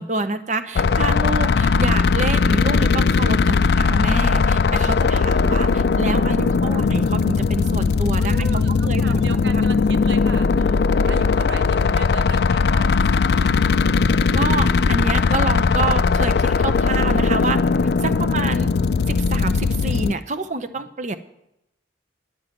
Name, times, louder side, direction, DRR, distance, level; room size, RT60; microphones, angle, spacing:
voice 1, 0.0-9.7 14.3-17.6 18.0-18.7 19.1-21.2, right 3 dB, 40° right, 10 dB, 0.7 m, -27 dB
sound 1, 0.7-20.1, left 4 dB, 60° left, 0.4 m, -19 dB
voice 2, 5.1-6.2 6.7-6.9 8.2-13.8, right 5 dB, 75° right, 10 dB, 0.6 m, -38 dB
11.0 x 6.2 x 9.0 m, 0.84 s
head